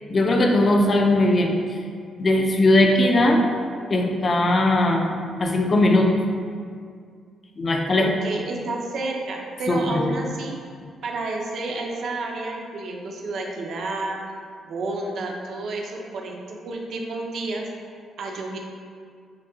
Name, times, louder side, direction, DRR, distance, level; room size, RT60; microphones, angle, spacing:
voice 1, 0.1-1.8 2.2-3.4 3.9-5.1 5.4-6.2 7.6-8.1 9.7-10.1, left 1 dB, 25° left, 2 dB, 0.4 m, -19 dB
voice 2, 8.0-10.6 11.0-14.2 14.6-17.7 18.2-18.6, right 2 dB, 50° right, 1 dB, 0.5 m, -30 dB
6.5 x 2.2 x 3.7 m, 2.2 s
cardioid pair, 180°, 0 cm